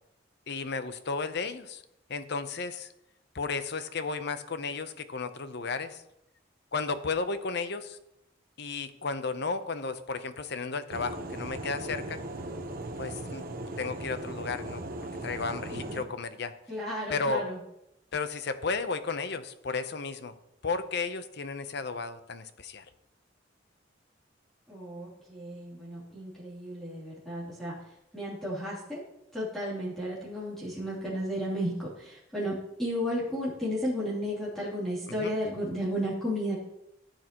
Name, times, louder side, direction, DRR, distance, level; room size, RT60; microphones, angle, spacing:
voice 1, 0.5-1.8 2.1-2.9 3.3-6.0 6.7-8.0 8.6-12.2 13.0-13.4 13.8-14.8 15.2-16.5 17.1-17.4 18.1-20.3 20.6-22.8 35.2-35.4, left 4 dB, 60° left, 11 dB, 0.8 m, -33 dB
sound 1, 10.9-16.0, right 1 dB, 50° right, 1.0 m, -38 dB
voice 2, 15.7-16.1 16.7-17.6 24.7-27.7 28.1-29.0 29.3-36.6, equal, ahead, -9 dB, 3.1 m, -33 dB
15.0 x 9.1 x 3.0 m, 0.84 s
head